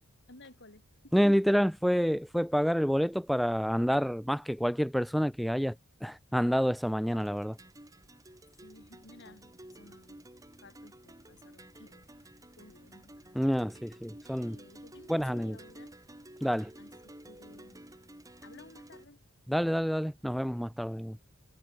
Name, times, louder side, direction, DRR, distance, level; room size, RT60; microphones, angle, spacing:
voice 1, 0.3-1.1 8.6-10.2 10.6-12.1 12.6-13.3 14.3-16.0 16.8-17.8 18.4-19.2, left 2 dB, 55° left, 5.6 m, -56 dB
voice 2, 1.1-5.7 6.0-7.6 13.4-14.6 15.1-15.6 16.4-16.7 19.5-21.2, equal, ahead, 0.3 m, -28 dB
sound 1, 7.1-19.1, right 1 dB, 15° right, 4.1 m, -52 dB
head